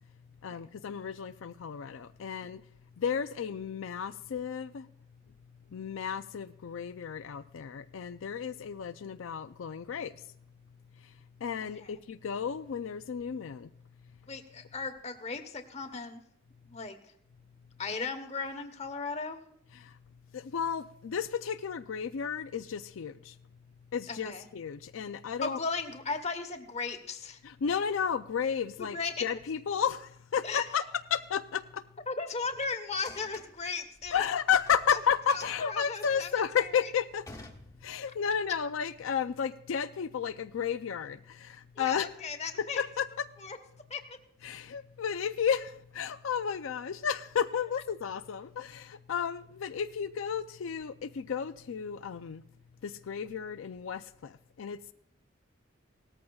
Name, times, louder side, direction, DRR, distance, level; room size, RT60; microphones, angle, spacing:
voice 1, 0.4-2.6 3.0-4.9 5.7-10.2 11.0-11.1 11.4-13.7 19.7-20.0 20.3-23.4 23.9-25.6 27.4-30.8 31.1-31.8 34.1-37.3 37.8-42.1 42.6-43.3 44.4-52.4 52.8-54.9, left 7 dB, 90° left, 10 dB, 0.4 m, -33 dB
voice 2, 11.6-11.9 14.3-16.2 16.6-17.0 17.8-19.4 24.1-24.5 25.4-27.4 28.9-29.2 30.4-30.6 32.1-34.2 34.9-35.0 35.3-36.9 41.8-42.8 43.4-43.6 43.9-44.2, left 4 dB, 35° left, 7 dB, 1.0 m, -36 dB
sound 1, 32.9-34.8 35.1-38.2, left 2 dB, 15° left, 1.1 m, -50 dB
18.0 x 14.0 x 2.3 m, 0.73 s
head